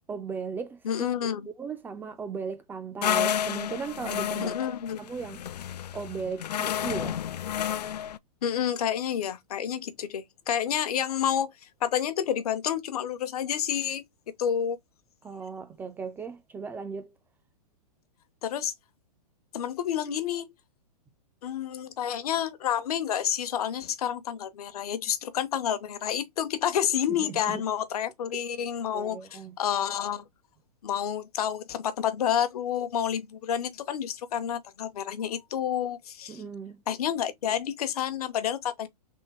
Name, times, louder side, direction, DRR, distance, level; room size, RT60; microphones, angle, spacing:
voice 1, 0.1-0.8 1.6-4.6 5.0-5.4 5.9-7.2 15.2-17.1 27.1-27.6 28.3-28.4 28.9-29.5 36.3-36.8, right 5 dB, 10° right, 0.4 m, -37 dB
voice 2, 0.8-1.5 4.4-5.0 8.4-11.5 11.8-14.0 14.4-14.8 18.4-18.7 19.5-20.5 21.4-30.3 30.8-36.4 36.9-38.9, left 9 dB, 70° left, 0.9 m, -29 dB
sound 1, 3.0-8.2, left 9 dB, 85° left, 0.4 m, -30 dB
3.7 x 2.8 x 4.2 m
hypercardioid pair, 140°, 20 cm